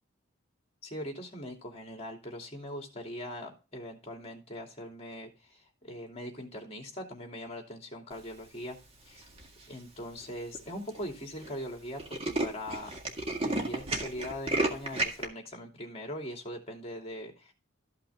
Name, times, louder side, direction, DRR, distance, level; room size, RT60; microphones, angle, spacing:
voice 1, 0.8-8.8 9.1-9.3 9.7-13.0 13.4-17.5, equal, 30° left, 3 dB, 2.7 m, -41 dB
Tools, 9.2-9.6 10.2-10.3 10.5-10.6 10.9-11.1 11.4-11.5 11.8-15.2, right 2 dB, 30° right, 1.9 m, -32 dB
13.5 x 5.9 x 3.6 m, 0.32 s
head